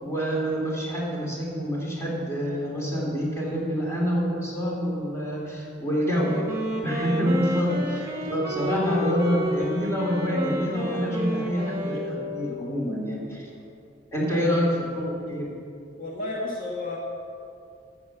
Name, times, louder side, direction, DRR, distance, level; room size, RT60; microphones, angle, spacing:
voice 1, 0.0-6.3 6.8-13.5 14.1-14.7 14.9-15.5, equal, 15° left, -4 dB, 2.9 m, -27 dB
Wind instrument woodwind instrument, 6.0-12.8, equal, 20° right, 1.8 m, -31 dB
voice 2, 16.0-17.0, left 2 dB, 50° left, -3 dB, 1.5 m, -33 dB
14.5 x 7.6 x 6.0 m, 2.5 s
head